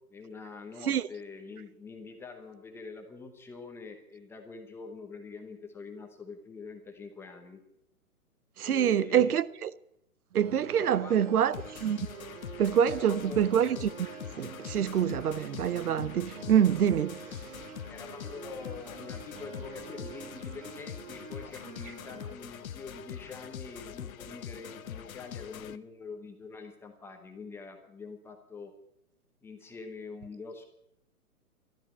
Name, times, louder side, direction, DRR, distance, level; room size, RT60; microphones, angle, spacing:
voice 1, 0.1-7.6 8.6-9.4 10.8-11.5 12.9-13.5 17.9-28.7 29.4-30.7, left 4 dB, 5° left, 0.9 m, -45 dB
voice 2, 8.6-9.7 10.3-11.5 11.8-12.0 12.6-14.1 14.4-17.2, right 9 dB, 70° right, 0.8 m, -26 dB
sound 1, 10.3-22.3, right 6 dB, 55° right, 2.4 m, -47 dB
sound 2, 11.5-25.8, left 9 dB, 65° left, 1.0 m, -43 dB
13.0 x 11.5 x 7.2 m
hypercardioid pair, 150°, 46 cm